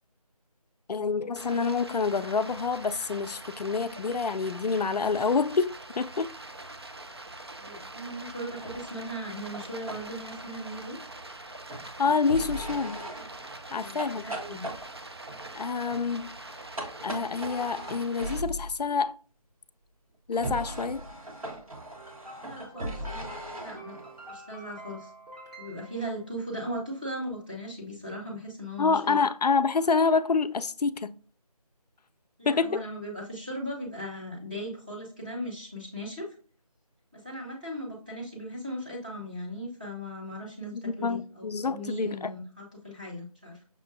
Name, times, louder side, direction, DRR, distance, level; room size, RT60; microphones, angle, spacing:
voice 1, 0.9-6.3 12.0-13.1 13.7-14.2 15.6-16.3 17.0-19.2 20.3-21.0 28.8-31.1 32.5-32.8 40.7-42.3, left 4 dB, 85° left, 0.4 m, -27 dB
Stream, 1.4-18.4, right 2 dB, 40° right, 0.4 m, -44 dB
voice 2, 7.6-11.0 13.7-14.6 22.4-23.2 23.6-24.0 24.3-25.1 25.6-29.3 32.4-36.3 37.1-43.6, equal, 15° right, 0.7 m, -38 dB
sound 1, 8.5-18.8 20.3-24.4, right 1 dB, 60° right, 1.2 m, -40 dB
sound 2, 21.9-26.6, right 1 dB, 85° right, 1.8 m, -48 dB
6.1 x 2.2 x 2.5 m
figure-of-eight pair, 170°, 20 cm